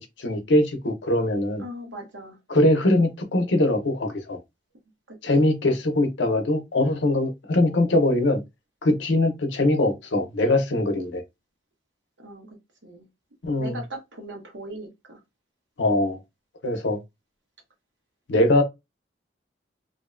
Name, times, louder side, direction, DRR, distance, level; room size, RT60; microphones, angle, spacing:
voice 1, 0.0-1.6 2.5-4.4 5.2-8.4 8.8-11.2 13.4-13.8 15.8-16.2 16.6-17.0 18.3-18.6, left 1 dB, 85° left, 0.7 m, -22 dB
voice 2, 1.6-2.4 5.1-5.2 12.2-12.5 12.8-13.1 13.6-15.2, right 1 dB, 80° right, 0.9 m, -39 dB
2.6 x 2.2 x 2.4 m
head